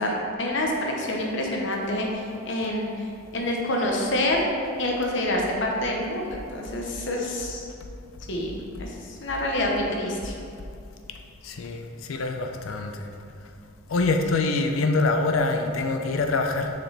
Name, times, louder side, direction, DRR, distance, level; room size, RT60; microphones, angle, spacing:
voice 1, 0.0-3.1 3.3-4.4 4.8-7.7 8.3-10.3, left 1 dB, 60° left, 0 dB, 0.9 m, -27 dB
voice 2, 11.4-13.1 13.9-16.7, left 3 dB, 80° left, 4 dB, 0.5 m, -25 dB
6.2 x 4.9 x 3.3 m, 2.5 s
head